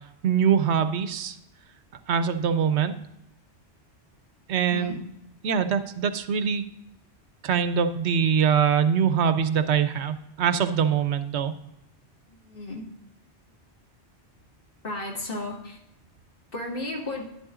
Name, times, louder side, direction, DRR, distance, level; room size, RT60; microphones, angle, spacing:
voice 1, 0.2-1.4 2.1-2.9 4.5-5.0 5.4-6.6 7.4-11.5, right 7 dB, 80° right, 10 dB, 0.9 m, -23 dB
voice 2, 12.5-12.8 14.8-15.8 16.5-17.2, left 2 dB, 55° left, -2 dB, 2.2 m, -33 dB
11.0 x 10.5 x 2.5 m, 0.83 s
omnidirectional pair, 1.2 m